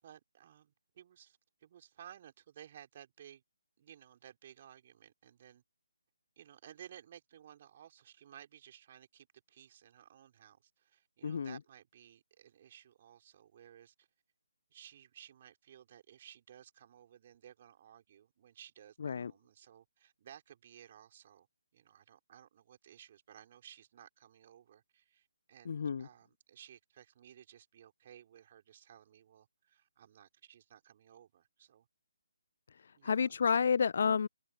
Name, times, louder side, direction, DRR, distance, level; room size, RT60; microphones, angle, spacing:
voice 1, 0.0-3.4 3.8-5.6 6.4-14.1 14.7-21.5 21.7-31.9 32.9-33.6, right 10 dB, 30° right, 4.5 m, -57 dB
voice 2, 11.2-11.6 19.0-19.3 25.7-26.1 33.0-34.3, left 6 dB, 45° left, 0.5 m, -30 dB
figure-of-eight pair, 145°, 0 cm